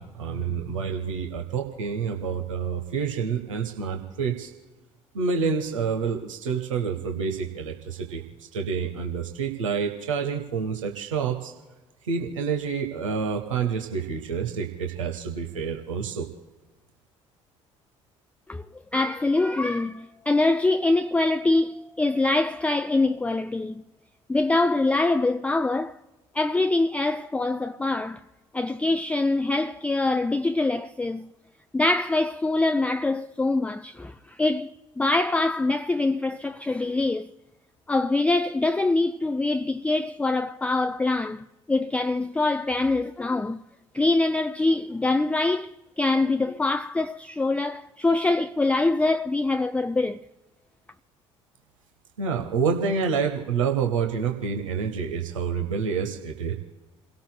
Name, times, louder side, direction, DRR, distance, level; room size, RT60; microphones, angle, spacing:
voice 1, 0.0-4.5 5.1-11.5 12.0-16.3 52.2-56.6, right 6 dB, 75° right, 1.1 m, -28 dB
voice 2, 18.9-23.8 24.3-26.0 26.3-28.2 28.5-31.3 31.7-37.3 37.9-43.6 43.9-45.7 46.0-50.2, left 2 dB, 10° left, 0.4 m, -24 dB
29.0 x 17.5 x 2.2 m
figure-of-eight pair, 55°, 17 cm